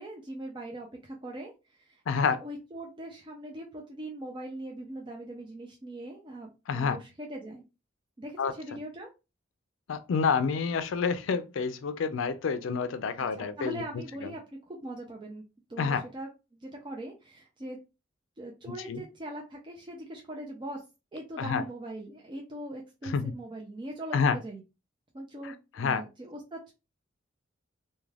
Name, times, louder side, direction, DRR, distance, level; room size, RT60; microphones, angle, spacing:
voice 1, 0.0-7.6 8.2-9.1 13.2-15.4 15.7-17.8 18.4-20.8 21.1-24.6 25.1-26.7, right 1 dB, 25° right, 0.4 m, -41 dB
voice 2, 2.1-2.4 6.7-7.0 8.4-8.5 9.9-13.8 15.8-16.0 18.9-19.0 21.4-21.6 23.0-23.3 24.1-24.4 25.8-26.0, left 5 dB, 70° left, 0.4 m, -28 dB
2.4 x 2.2 x 3.2 m
head